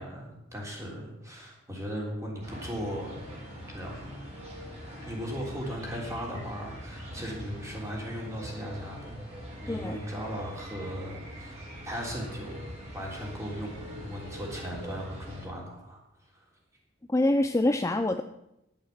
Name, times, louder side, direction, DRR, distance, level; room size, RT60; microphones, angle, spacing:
voice 1, 0.0-3.2 3.7-4.2 5.0-9.3 9.6-12.7 12.9-16.5, equal, 15° right, -2 dB, 3.5 m, -37 dB
sound 1, 2.4-15.5, equal, 35° right, 4.8 m, -43 dB
voice 2, 9.7-10.0 17.1-18.2, left 1 dB, 15° left, 8 dB, 0.4 m, -25 dB
11.0 x 9.1 x 7.3 m, 0.86 s
head